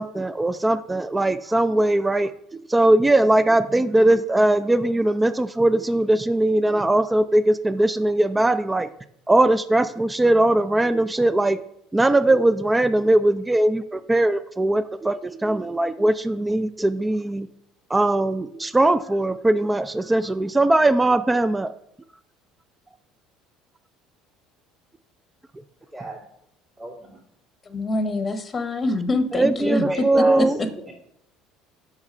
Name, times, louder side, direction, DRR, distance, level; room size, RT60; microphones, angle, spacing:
voice 1, 0.0-2.3 2.7-8.9 9.3-11.6 11.9-17.5 17.9-21.7 29.3-30.6, right 1 dB, 15° right, 14 dB, 0.4 m, -20 dB
voice 2, 26.8-27.2 29.8-30.9, right 1 dB, 30° right, -6 dB, 2.4 m, -31 dB
voice 3, 27.7-30.0 30.4-30.5, left 2 dB, 30° left, 10 dB, 0.9 m, -25 dB
5.7 x 4.7 x 5.4 m, 0.72 s
hypercardioid pair, 65°, 0 cm